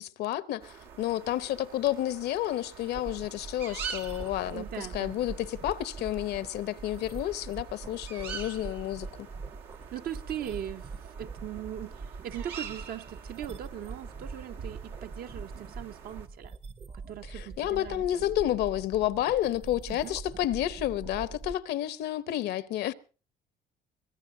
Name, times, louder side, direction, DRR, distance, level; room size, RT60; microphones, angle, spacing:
voice 1, 0.0-9.3 17.2-22.9, left 13 dB, 75° left, 0.7 m, -30 dB
sound 1, 0.6-16.3, right 6 dB, 85° right, 1.6 m, -45 dB
sound 2, 2.9-21.6, right 4 dB, 30° right, 0.7 m, -43 dB
voice 2, 4.5-5.2 9.9-10.9 11.2-16.6 17.1-18.0 19.9-20.2, right 10 dB, 65° right, 0.8 m, -39 dB
24.0 x 17.0 x 2.7 m
cardioid pair, 110°, 17 cm